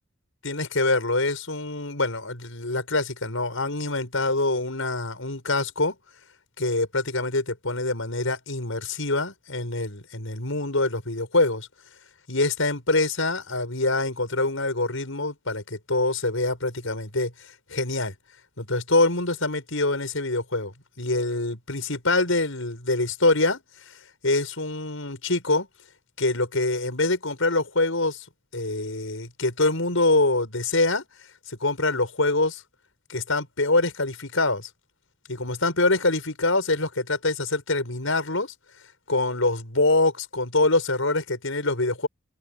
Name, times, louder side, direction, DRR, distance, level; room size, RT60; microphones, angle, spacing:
voice 1, 0.4-5.9 6.6-11.7 12.3-17.3 17.7-18.1 18.6-23.6 23.9-24.0 24.2-25.7 26.2-28.2 28.5-31.0 31.5-32.6 33.1-34.7 35.3-38.5 39.1-42.1, left 2 dB, 70° left, 6.0 m, -25 dB
head